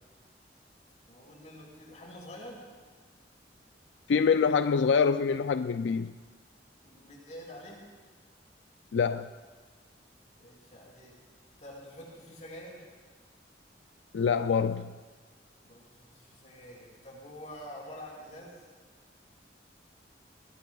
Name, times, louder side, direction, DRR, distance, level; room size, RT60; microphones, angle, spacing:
voice 1, 1.1-2.6 6.8-7.8 10.4-11.2 11.6-12.9 15.6-18.6, equal, 45° left, -3 dB, 5.7 m, -47 dB
voice 2, 4.1-6.1 8.9-9.3 14.1-14.9, left 6 dB, 90° left, 10 dB, 0.4 m, -25 dB
22.0 x 21.0 x 2.3 m, 1.5 s
head